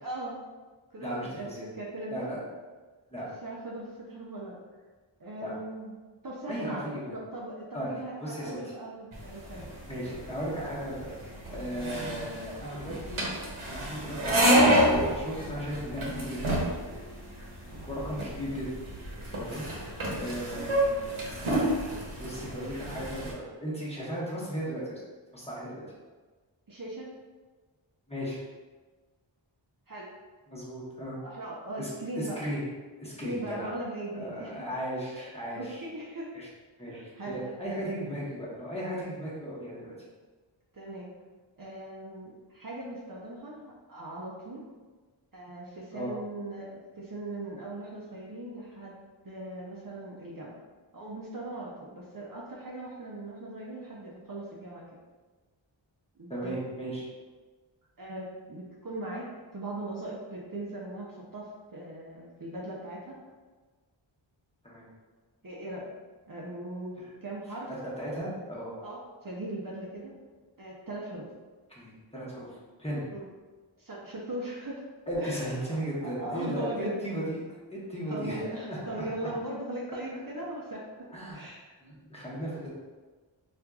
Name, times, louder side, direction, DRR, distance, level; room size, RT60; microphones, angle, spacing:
voice 1, 0.0-0.4 0.9-1.5 1.7-2.3 3.2-4.6 5.2-6.0 6.2-9.7 26.7-27.1 29.9-30.1 31.2-32.4 33.0-34.6 35.1-36.3 36.9-37.8 40.7-41.1 41.6-44.6 45.3-48.9 49.2-50.6 50.9-54.9 56.2-56.6 58.0-63.2 65.4-65.9 66.3-67.7 68.8-70.1 70.6-71.3 73.1-73.3 73.8-74.9 75.1-75.5 76.0-77.0 78.1-80.9 81.3-81.7, right 1 dB, 45° right, -4 dB, 0.6 m, -39 dB
voice 2, 1.0-1.7 2.1-2.4 3.1-3.3 5.4-5.5 6.5-7.1 7.7-7.9 8.2-8.7 9.9-11.1 11.5-13.3 13.6-16.4 16.7-17.1 17.8-18.7 19.4-19.6 20.1-21.7 22.2-25.0 25.3-25.8 28.1-28.4 30.5-31.2 31.8-31.9 32.2-32.6 33.0-33.7 34.1-35.9 36.3-36.5 36.8-37.0 37.2-40.0 45.9-46.1 56.3-57.1 64.6-64.8 68.0-68.7 71.8-73.1 75.1-77.4 77.7-78.4 78.7-79.1 81.1-81.5 81.8-82.7, equal, 15° left, -7 dB, 1.0 m, -36 dB
sound 1, 9.1-23.3, equal, 90° right, 0.9 m, -29 dB
4.4 x 2.5 x 2.3 m, 1.3 s
wide cardioid pair, 50°, 47 cm